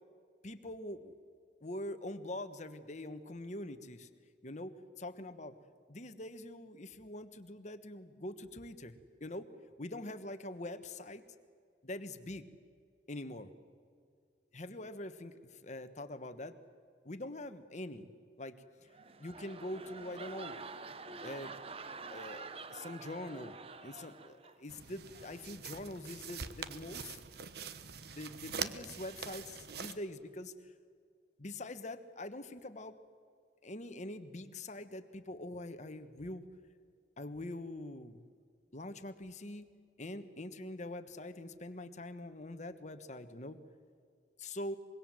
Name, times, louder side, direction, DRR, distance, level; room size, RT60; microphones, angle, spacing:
voice 1, 0.4-1.1 1.6-4.1 4.4-5.6 5.9-8.9 9.2-9.5 9.8-11.2 11.8-12.5 13.1-13.5 14.5-16.6 17.0-18.1 18.4-18.6 19.2-20.6 21.2-21.5 22.1-23.5 23.8-27.2 28.1-30.7 31.4-33.0 33.6-36.4 37.2-38.3 38.7-39.7 40.0-43.6 44.4-44.8, left 1 dB, 40° left, 9 dB, 1.4 m, -44 dB
sound 1, 18.8-24.8 25.1-25.5, right 4 dB, 30° right, 0.9 m, -48 dB
sound 2, 24.7-29.9, right 6 dB, 60° right, 1.1 m, -44 dB
25.0 x 22.5 x 7.7 m, 2.2 s
head